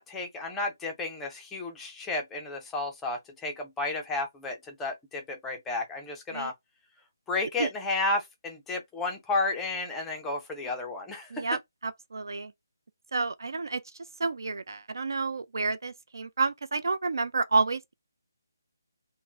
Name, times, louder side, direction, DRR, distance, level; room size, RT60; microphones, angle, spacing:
voice 1, 0.0-6.5 7.3-11.5, left 3 dB, 5° left, 0.4 m, -32 dB
voice 2, 11.3-12.5 13.1-13.8 14.2-17.9, right 4 dB, 70° right, 0.4 m, -30 dB
3.6 x 2.0 x 4.2 m
hypercardioid pair, 180°, 2 cm